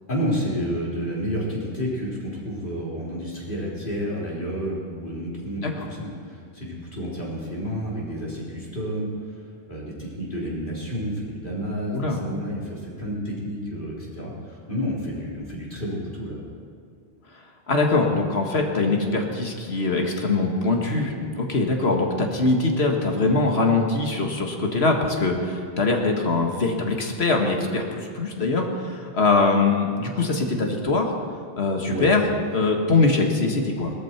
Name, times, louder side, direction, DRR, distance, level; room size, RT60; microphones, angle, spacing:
voice 1, 0.1-16.4 31.9-32.1, equal, 50° left, -5 dB, 4.0 m, -30 dB
voice 2, 17.7-31.2 31.6-32.2 32.5-33.9, left 3 dB, 75° left, 2 dB, 1.9 m, -22 dB
19.0 x 14.0 x 4.5 m, 2.2 s
omnidirectional pair, 1.1 m